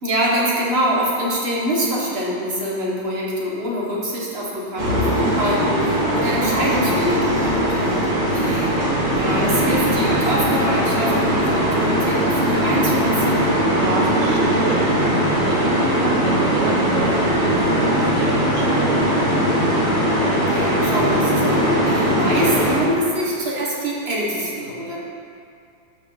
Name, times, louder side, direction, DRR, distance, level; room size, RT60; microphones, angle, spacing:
voice 1, 0.0-8.9 9.1-13.5 20.4-25.0, equal, 30° right, -4 dB, 1.6 m, -25 dB
sound 1, 4.8-22.8, equal, 50° right, 2.6 m, -19 dB
voice 2, 8.2-8.8 13.7-19.4, right 5 dB, 75° right, 0 dB, 0.7 m, -30 dB
14.0 x 4.8 x 3.9 m, 2.4 s
omnidirectional pair, 2.2 m